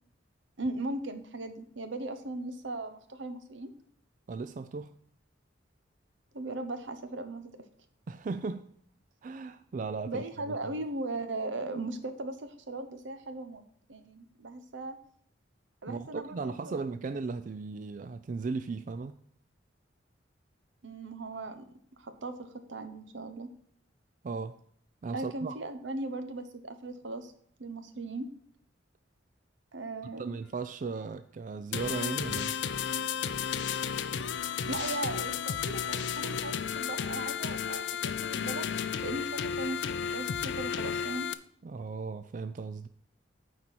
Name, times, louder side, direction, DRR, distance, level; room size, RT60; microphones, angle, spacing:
voice 1, 0.6-3.7 6.3-7.5 10.1-13.6 13.9-15.0 15.8-17.0 20.8-21.6 22.0-23.5 25.1-27.3 27.6-28.3 29.7-30.3 34.7-38.7 39.0-41.3, right 2 dB, 85° right, 9 dB, 1.0 m, -38 dB
voice 2, 4.3-4.9 8.1-8.7 9.2-10.6 15.9-19.2 24.2-24.6 25.0-25.6 30.0-32.5 41.6-42.9, right 4 dB, 45° right, 10 dB, 0.3 m, -36 dB
sound 1, 31.7-41.3, left 7 dB, 70° left, 0.5 m, -33 dB
9.2 x 4.4 x 6.1 m, 0.63 s
head